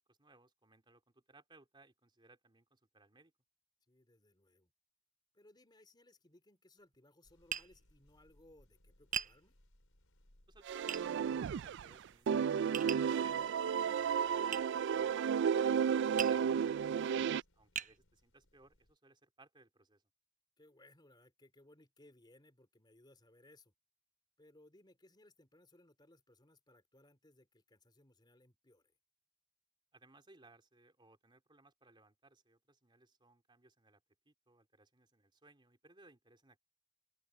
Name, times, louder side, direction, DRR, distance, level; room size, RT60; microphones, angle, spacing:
voice 1, 0.1-3.3 10.5-14.7 15.6-20.0 29.9-36.6, right 2 dB, 25° right, 3.0 m, -64 dB
voice 2, 3.9-4.7 5.3-9.6 14.9-15.2 20.6-23.7 24.4-28.9, left 1 dB, 20° left, 3.2 m, -65 dB
sound 1, 7.2-19.0, left 1 dB, 80° left, 4.6 m, -71 dB
Tap, 7.5-7.7 9.1-9.4 10.9-11.0 12.7-13.1 14.5-14.7 16.2-16.4 17.1-17.2 17.8-17.9, right 8 dB, 40° right, 0.7 m, -39 dB
sound 2, 10.7-11.9 12.3-17.4, right 7 dB, 55° right, 0.3 m, -33 dB
open air
head